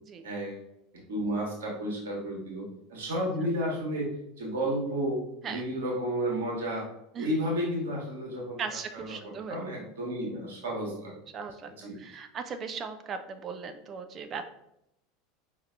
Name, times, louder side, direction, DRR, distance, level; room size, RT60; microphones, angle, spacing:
voice 1, 0.2-0.6 1.1-4.1 4.4-6.8 7.2-8.6 8.9-9.1 9.5-11.1 11.8-12.0, equal, 65° right, -2 dB, 1.2 m, -32 dB
voice 2, 8.6-9.6 11.3-14.5, right 6 dB, 35° right, 7 dB, 0.3 m, -38 dB
5.1 x 2.7 x 2.5 m, 0.82 s
figure-of-eight pair, 80°, 0 cm